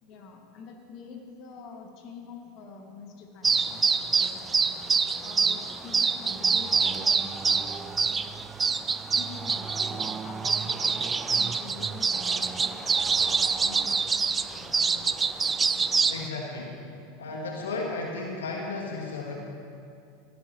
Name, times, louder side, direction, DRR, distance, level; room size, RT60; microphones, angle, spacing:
voice 1, 0.0-4.5 5.2-8.0 9.2-15.5 16.0-16.1, left 4 dB, 50° left, 2 dB, 2.2 m, -46 dB
sound 1, 3.4-16.3, right 5 dB, 20° right, 0.6 m, -26 dB
voice 2, 16.1-16.8 17.2-19.3, left 3 dB, 85° left, 0 dB, 1.6 m, -34 dB
18.0 x 15.5 x 3.2 m, 2.5 s
hypercardioid pair, 90°, 0 cm